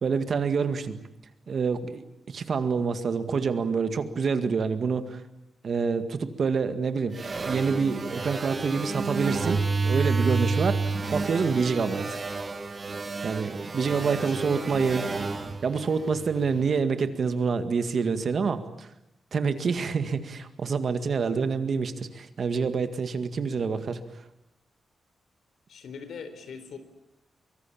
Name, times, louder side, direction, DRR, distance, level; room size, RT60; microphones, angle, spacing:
voice 1, 0.0-1.0 1.5-5.2 5.6-12.1 13.2-15.1 15.6-18.9 19.3-24.2, right 5 dB, 45° right, 9 dB, 1.9 m, -27 dB
sound 1, 7.1-16.6, right 4 dB, 30° right, 2.0 m, -30 dB
voice 2, 14.0-15.4 25.7-26.8, left 5 dB, 75° left, 10 dB, 3.9 m, -42 dB
24.0 x 24.0 x 8.7 m, 0.81 s
wide cardioid pair, 180°, 0 cm